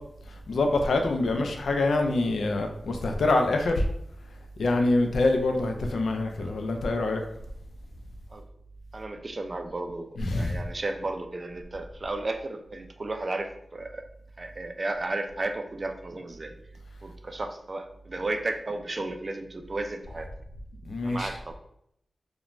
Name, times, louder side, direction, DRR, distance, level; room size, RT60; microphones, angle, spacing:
voice 1, 0.5-3.8 4.6-7.2 10.2-10.6 20.8-21.3, left 2 dB, 90° left, 4 dB, 0.3 m, -25 dB
voice 2, 8.9-14.0 14.4-16.5 17.0-20.3 21.0-21.5, right 2 dB, 40° right, 6 dB, 0.3 m, -34 dB
3.0 x 2.1 x 2.4 m, 0.76 s
wide cardioid pair, 75°, 0 cm